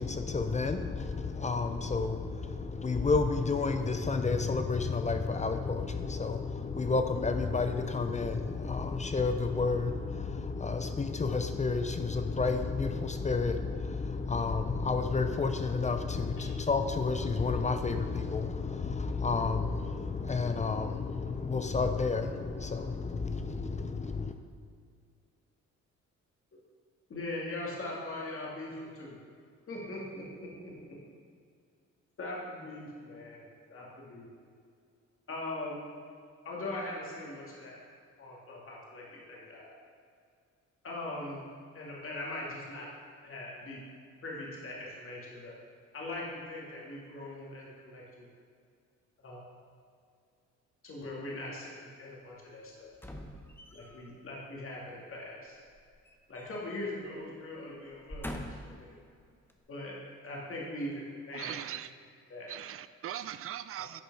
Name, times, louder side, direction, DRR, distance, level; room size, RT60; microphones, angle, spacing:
voice 1, 0.0-24.3, left 4 dB, 25° left, 0.6 m, -31 dB
voice 2, 27.1-29.2 29.7-30.7 32.2-34.3 35.3-35.8 36.4-37.8 38.2-39.7 40.8-41.4 41.7-42.9 43.2-43.8 44.2-45.6 45.9-48.3 49.2-49.5 50.8-52.9 53.7-55.6 56.3-58.9 59.7-59.9 60.2-61.6 62.3-62.5 63.8-63.9, left 2 dB, 45° left, 2.3 m, -41 dB
sound 1, 52.9-54.1 55.7-56.8 57.1-57.3 57.9-58.8 59.5-59.6, equal, 5° left, 0.9 m, -44 dB
voice 3, 61.3-61.9 62.5-64.0, right 11 dB, 50° right, 0.4 m, -40 dB
10.5 x 5.3 x 4.8 m
cardioid pair, 90°, 30 cm